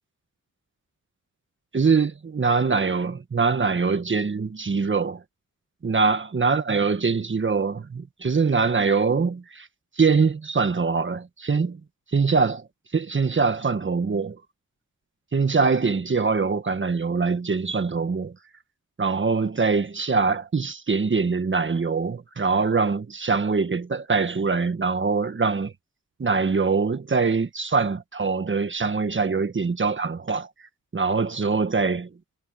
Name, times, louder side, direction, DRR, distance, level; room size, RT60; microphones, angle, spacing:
voice 1, 1.7-5.2 5.8-9.7 10.0-11.8 12.1-12.6 12.9-14.4 15.3-18.3 19.0-25.7 26.2-30.5 30.9-32.1, right 4 dB, 35° right, 1.5 m, -23 dB
cardioid pair, 85°, 33 cm